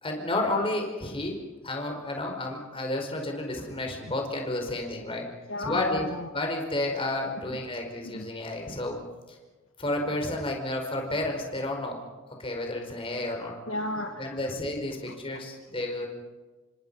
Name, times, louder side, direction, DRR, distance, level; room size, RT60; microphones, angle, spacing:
voice 1, 0.0-1.4 1.6-5.3 5.6-9.0 9.3-9.4 9.8-12.0 12.3-13.6 14.2-16.1, left 1 dB, 25° left, 2 dB, 4.9 m, -31 dB
voice 2, 5.5-6.3 8.1-8.3 13.7-14.4 15.1-15.4, left 2 dB, 70° left, 5 dB, 1.6 m, -33 dB
28.5 x 25.5 x 5.6 m, 1.3 s
head